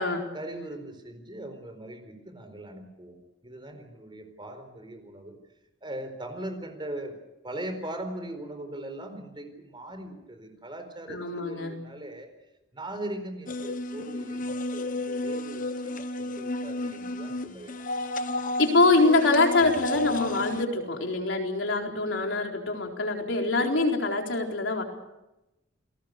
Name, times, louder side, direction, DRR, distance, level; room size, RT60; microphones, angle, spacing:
voice 1, 0.3-3.2 3.4-5.4 5.8-7.1 7.4-12.3 12.7-17.7, right 1 dB, 25° right, 8 dB, 4.4 m, -40 dB
voice 2, 11.1-11.7 18.6-24.8, left 3 dB, 80° left, 2 dB, 4.2 m, -24 dB
sound 1, 13.5-20.6, left 2 dB, 45° left, 1.1 m, -33 dB
29.0 x 19.5 x 6.8 m, 0.95 s
head